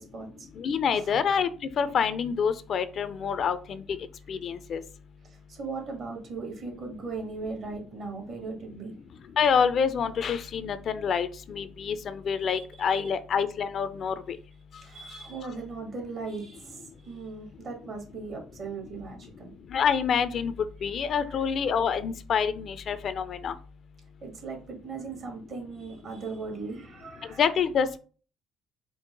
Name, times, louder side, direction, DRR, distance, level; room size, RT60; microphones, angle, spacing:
voice 1, 0.0-0.5 0.9-1.2 5.2-8.9 12.5-12.6 14.8-19.5 21.1-21.4 24.2-27.4, right 4 dB, 60° right, 3 dB, 1.7 m, -38 dB
voice 2, 0.6-1.5 1.8-3.8 4.3-4.8 9.4-14.1 19.7-20.5 20.8-23.5 27.4-28.0, left 6 dB, 55° left, 13 dB, 0.4 m, -27 dB
4.6 x 2.1 x 3.8 m, 0.38 s
hypercardioid pair, 60°, 0 cm